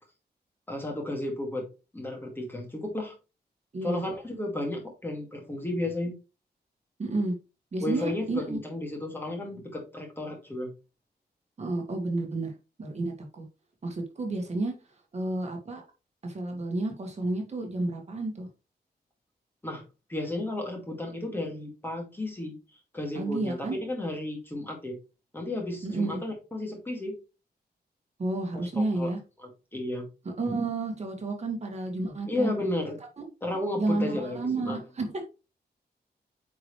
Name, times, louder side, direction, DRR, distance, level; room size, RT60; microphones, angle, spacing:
voice 1, 0.7-1.7 1.9-3.1 3.8-6.1 7.8-10.7 19.6-19.8 20.1-22.6 22.9-25.0 25.3-27.2 28.5-29.1 29.4-30.0 32.3-33.0 33.4-34.8, left 1 dB, 10° left, 1 dB, 2.3 m, -33 dB
voice 2, 7.0-7.3 7.7-8.6 11.6-12.5 12.8-13.5 13.8-14.7 15.1-15.8 16.2-18.5 23.1-23.8 25.8-26.2 28.2-29.2 30.3-32.5 33.8-35.2, right 2 dB, 40° right, 2 dB, 2.0 m, -31 dB
9.3 x 4.8 x 3.3 m, 0.30 s
wide cardioid pair, 165°, 17 cm